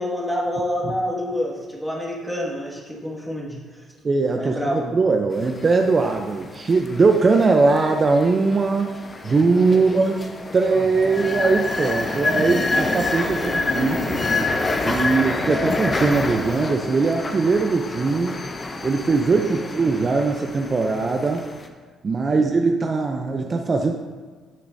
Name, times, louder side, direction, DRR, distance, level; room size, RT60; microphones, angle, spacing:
voice 1, 0.0-3.8 4.4-5.0 9.3-9.4 9.7-9.8 13.2-13.7 14.8-14.9 15.5-15.8 19.3-19.6 22.2-22.4, equal, 5° left, -2 dB, 1.9 m, -29 dB
voice 2, 4.0-4.6 4.9-8.9 9.2-10.2 10.5-14.2 14.8-18.4 18.8-21.4 22.0-23.9, right 4 dB, 40° right, 3 dB, 0.6 m, -20 dB
sound 1, 5.3-21.7, left 3 dB, 30° left, 0.8 m, -28 dB
9.7 x 6.6 x 2.7 m, 1.5 s
supercardioid pair, 70°, 0 cm